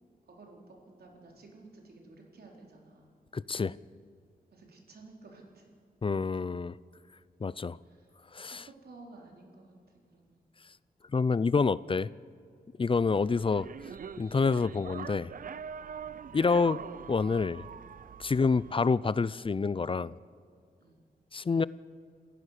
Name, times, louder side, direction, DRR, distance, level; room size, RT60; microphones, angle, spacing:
voice 1, 0.3-3.1 4.5-5.7 7.8-10.4 15.8-16.1 20.8-21.1, right 3 dB, 85° right, 0 dB, 4.1 m, -54 dB
voice 2, 3.3-3.8 6.0-6.8 7.4-7.8 8.3-8.6 11.1-12.1 12.8-13.7 14.2-15.3 16.3-16.8 17.1-17.7 18.2-20.2 21.3-21.7, left 4 dB, 35° left, 19 dB, 0.5 m, -27 dB
sound 1, 12.9-18.7, right 7 dB, 60° right, 0.5 m, -44 dB
28.0 x 15.0 x 6.6 m, 2.2 s
wide cardioid pair, 85°, 16 cm